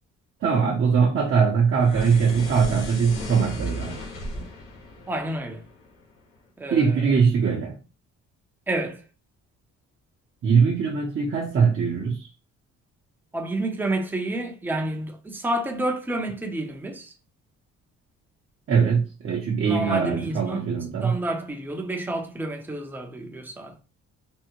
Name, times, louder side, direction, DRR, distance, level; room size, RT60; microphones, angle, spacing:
voice 1, 0.4-4.0 6.7-7.8 10.4-12.3 18.7-21.2, right 6 dB, 45° right, 0.7 m, -21 dB
sound 1, 1.8-6.2, left 1 dB, 90° left, 1.0 m, -35 dB
voice 2, 5.1-5.6 6.6-6.9 8.7-9.0 13.3-17.1 19.6-20.7 21.0-23.8, right 1 dB, 5° right, 0.5 m, -29 dB
3.5 x 2.0 x 2.9 m
cardioid pair, 90°, 30 cm